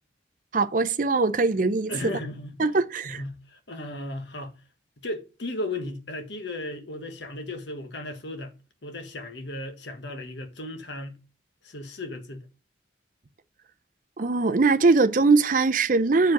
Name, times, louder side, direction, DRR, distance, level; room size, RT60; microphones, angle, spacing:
voice 1, 0.5-1.9 2.6-3.2 14.2-16.3, right 3 dB, 45° right, 0.6 m, -21 dB
voice 2, 1.9-2.6 3.0-4.6 5.0-8.5 8.8-11.2 11.6-12.4, left 1 dB, 65° left, 1.4 m, -35 dB
7.1 x 4.9 x 4.8 m
head